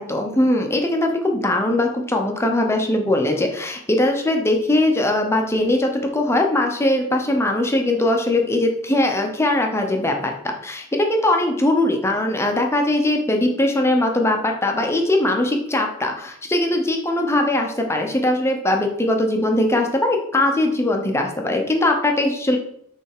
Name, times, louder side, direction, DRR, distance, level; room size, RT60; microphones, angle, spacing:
voice 1, 0.0-10.3 10.6-22.6, left 1 dB, 15° left, 3 dB, 0.7 m, -20 dB
6.1 x 3.4 x 4.8 m, 0.70 s
head